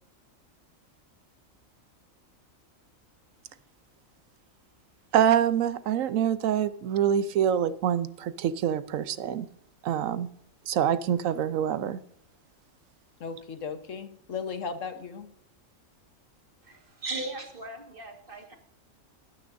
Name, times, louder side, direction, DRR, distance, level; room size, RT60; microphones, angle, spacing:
voice 1, 5.1-9.5 9.8-10.3 10.7-12.0, right 9 dB, 80° right, 1.0 m, -25 dB
voice 2, 13.2-15.3, left 5 dB, 70° left, 1.4 m, -36 dB
voice 3, 16.6-18.6, right 2 dB, 40° right, 1.8 m, -37 dB
18.5 x 9.9 x 2.6 m
omnidirectional pair, 1.4 m